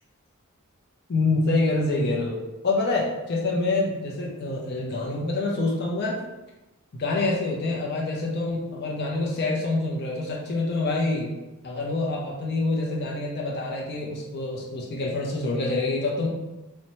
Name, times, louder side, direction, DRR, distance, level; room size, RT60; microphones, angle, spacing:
voice 1, 1.1-2.4 2.6-6.2 7.0-11.3 11.6-16.3, left 2 dB, 50° left, -3 dB, 0.4 m, -26 dB
2.7 x 2.1 x 2.9 m, 1.1 s
head